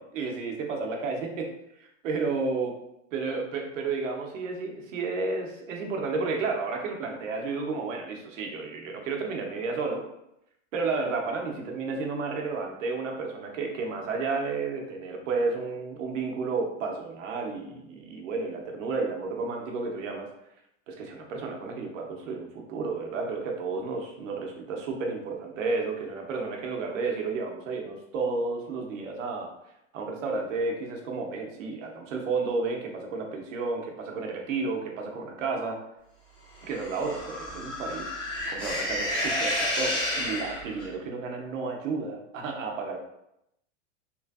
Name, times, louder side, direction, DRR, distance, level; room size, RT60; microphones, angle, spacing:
voice 1, 0.0-1.5 1.8-2.7 3.1-10.0 10.7-20.3 20.9-29.5 29.9-35.8 36.6-38.1 38.5-43.0, right 4 dB, 80° right, 2 dB, 0.8 m, -32 dB
sound 1, 36.6-40.9, left 1 dB, 15° left, 0.3 m, -31 dB
3.0 x 2.5 x 2.4 m, 0.82 s
supercardioid pair, 140°, 37 cm